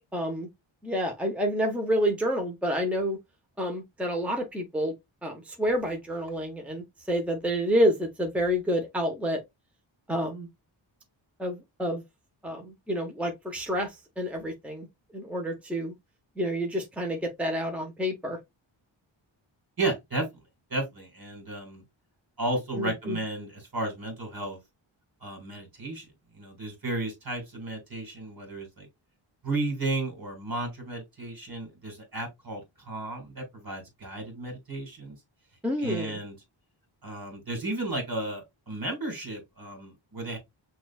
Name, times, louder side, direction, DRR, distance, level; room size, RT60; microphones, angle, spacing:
voice 1, 0.1-0.5 0.8-3.2 3.6-4.9 5.2-9.4 10.1-10.5 11.4-12.0 12.4-14.9 15.1-15.9 16.4-18.4 22.8-23.2 35.6-36.2, equal, 5° right, 0.9 m, -29 dB
voice 2, 19.8-20.3 20.7-21.8 22.4-24.6 25.2-26.1 26.3-28.9 29.4-35.1 35.8-36.3 37.0-40.4, right 2 dB, 50° right, 2.5 m, -33 dB
5.9 x 2.6 x 2.4 m
wide cardioid pair, 105°, 47 cm